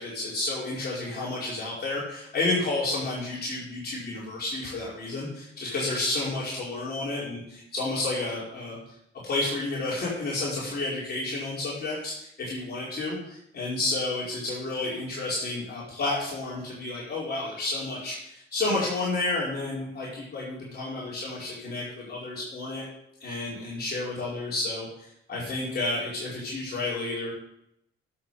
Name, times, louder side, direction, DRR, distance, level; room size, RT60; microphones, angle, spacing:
voice 1, 0.0-8.8 9.2-22.8 23.2-27.3, left 2 dB, 55° left, -6 dB, 4.7 m, -31 dB
11.0 x 7.5 x 5.6 m, 0.78 s
cardioid pair, 90°, 20 cm